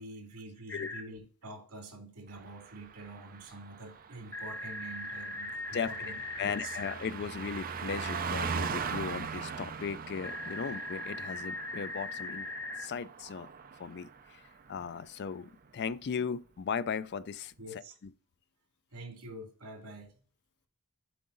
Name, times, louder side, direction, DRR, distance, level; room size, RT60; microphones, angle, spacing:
voice 1, 0.0-6.8 14.6-14.7 17.6-18.0 18.9-20.1, right 2 dB, 90° right, 2.3 m, -47 dB
sound 1, 0.7-1.0 4.3-7.0 10.2-12.9, left 2 dB, 10° left, 0.8 m, -39 dB
Car passing by, 2.4-14.3 14.6-14.8, right 5 dB, 40° right, 0.6 m, -40 dB
voice 2, 6.4-12.5 12.8-13.5 13.8-14.4 14.7-17.5, left 6 dB, 50° left, 0.4 m, -37 dB
7.8 x 4.7 x 3.8 m
head